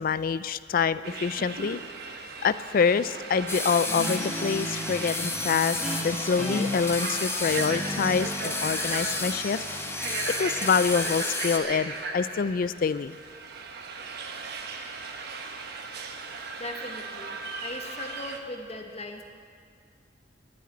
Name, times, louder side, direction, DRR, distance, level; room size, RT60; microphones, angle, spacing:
voice 1, 0.0-1.8 2.4-9.6 10.3-13.2, left 5 dB, 50° left, 16 dB, 0.4 m, -26 dB
sound 1, 1.0-18.4, right 4 dB, 60° right, 1.1 m, -37 dB
sound 2, 3.5-11.6, left 3 dB, 15° left, 1.0 m, -32 dB
Guitar, 3.9-11.0, equal, 5° right, 1.7 m, -36 dB
voice 2, 16.6-19.2, left 1 dB, 35° left, 3 dB, 1.4 m, -39 dB
11.5 x 10.0 x 9.4 m, 2.3 s
head